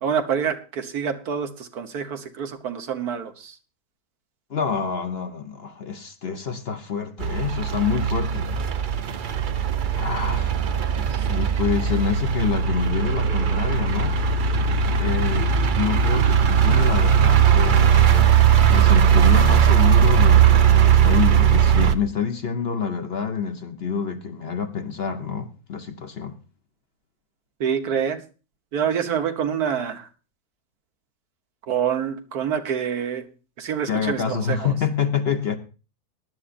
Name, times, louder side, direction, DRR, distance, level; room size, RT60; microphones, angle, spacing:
voice 1, 0.0-3.6 11.1-11.2 27.6-28.2 28.7-30.1 31.7-33.3 33.6-34.7, right 7 dB, 75° right, 1.6 m, -26 dB
voice 2, 4.5-8.5 10.0-10.6 10.9-14.2 15.0-15.5 15.7-18.3 18.7-26.3 33.9-35.6, left 6 dB, 50° left, 0.9 m, -27 dB
sound 1, 7.2-21.9, right 7 dB, 55° right, 0.5 m, -18 dB
18.0 x 11.0 x 2.5 m
omnidirectional pair, 1.6 m